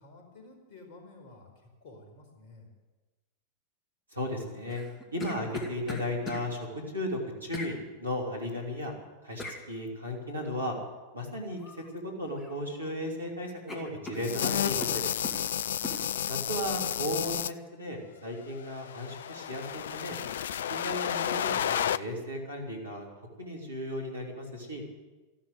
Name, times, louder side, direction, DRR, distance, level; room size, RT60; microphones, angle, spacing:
voice 1, 0.0-2.7, left 2 dB, 45° left, 2 dB, 4.7 m, -52 dB
voice 2, 4.1-4.8 5.1-6.7 6.9-8.9 9.2-10.8 11.1-11.6 11.9-15.0 16.2-20.2 20.7-23.1 23.4-24.8, left 1 dB, 80° right, -1 dB, 3.2 m, -35 dB
sound 1, 4.7-6.4 7.5-7.7 9.4-9.6 11.6-11.9 12.2-12.9 13.2-13.3 13.7-15.4 15.8-16.0, left 2 dB, 20° left, 2.5 m, -40 dB
sound 2, 14.2-17.5 18.6-22.0, left 9 dB, 60° left, 0.4 m, -31 dB
14.0 x 12.5 x 8.0 m, 1.2 s
figure-of-eight pair, 90°, 0 cm